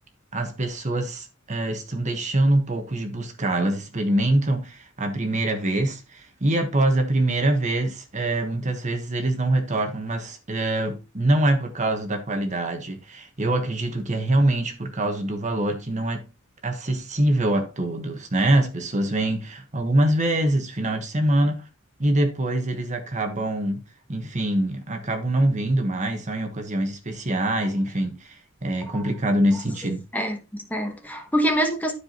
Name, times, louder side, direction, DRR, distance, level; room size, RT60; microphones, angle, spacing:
voice 1, 0.3-16.2 16.6-21.6 22.0-23.8 24.1-30.0, right 1 dB, 35° right, 1.3 m, -24 dB
voice 2, 30.1-31.9, right 1 dB, 10° left, 1.1 m, -25 dB
12.0 x 4.8 x 2.9 m
head